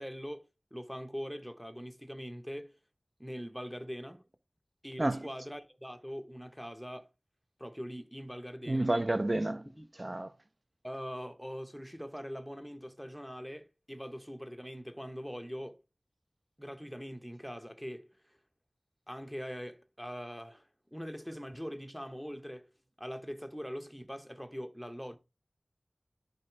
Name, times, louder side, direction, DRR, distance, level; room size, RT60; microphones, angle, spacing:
voice 1, 0.0-2.8 3.2-4.2 4.8-7.1 7.6-8.9 9.7-9.9 10.8-15.8 16.6-18.1 19.1-22.7 23.0-25.2, equal, ahead, 0.9 m, -42 dB
voice 2, 8.7-9.7 10.0-10.3, right 1 dB, 40° right, 0.4 m, -30 dB
11.0 x 4.0 x 3.2 m
wide cardioid pair, 50°, 0 cm